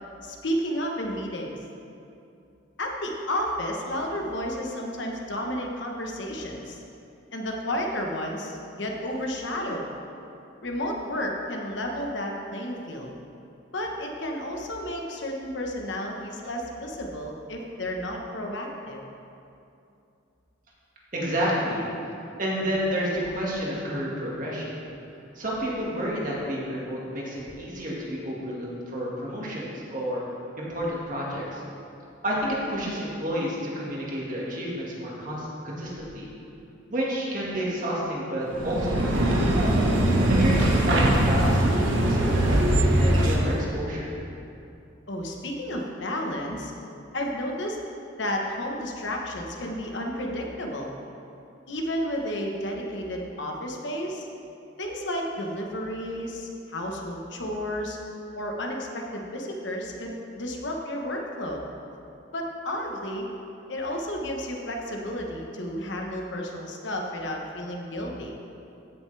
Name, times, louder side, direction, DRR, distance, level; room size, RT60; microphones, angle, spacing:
voice 1, 0.2-1.5 2.8-6.8 7.3-9.9 10.6-13.1 13.7-19.0 45.1-46.7 47.1-47.8 48.2-50.9 51.7-54.3 54.8-58.0 58.4-61.6 62.3-63.3 63.7-68.3, equal, 65° left, 0 dB, 1.2 m, -32 dB
voice 2, 21.1-21.9 22.4-24.7 25.4-30.2 30.6-31.6 32.2-36.3 36.9-39.5 40.3-42.7 43.0-44.1, equal, 40° right, -5 dB, 1.9 m, -30 dB
sound 1, 38.5-43.6, right 1 dB, 80° right, 1.3 m, -21 dB
15.5 x 6.6 x 3.4 m, 2.7 s
head